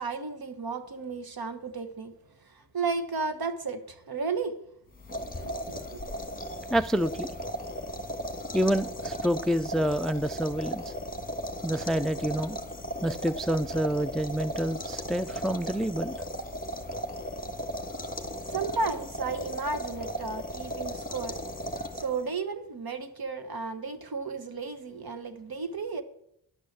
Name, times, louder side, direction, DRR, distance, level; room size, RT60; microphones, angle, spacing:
voice 1, 0.0-2.1 2.7-4.6 5.4-6.0 18.5-21.4 21.8-26.0, right 4 dB, 50° right, 1.4 m, -33 dB
sound 1, 4.9-22.3, equal, 20° left, 1.7 m, -36 dB
voice 2, 6.7-7.3 8.5-10.9 11.6-12.6 13.0-16.1, equal, ahead, 0.4 m, -28 dB
11.0 x 6.2 x 7.5 m
cardioid pair, 45°, 47 cm